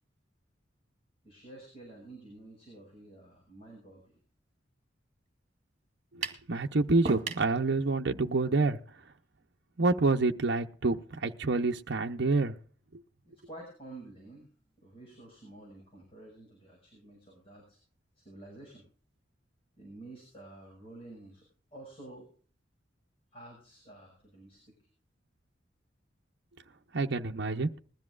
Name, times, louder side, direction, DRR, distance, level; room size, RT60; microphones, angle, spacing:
voice 1, 1.2-4.1 13.2-14.5 14.8-17.8 18.1-18.8 19.8-21.4 21.7-22.3 23.3-24.9 26.6-26.7, right 2 dB, 35° left, -2 dB, 6.0 m, -50 dB
sound 1, 6.2-6.5 7.0-7.5, right 4 dB, 40° right, 2.0 m, -35 dB
voice 2, 6.5-8.8 9.8-12.5 26.9-27.7, right 3 dB, 65° right, 4 dB, 0.8 m, -27 dB
21.0 x 13.0 x 2.4 m, 0.43 s
head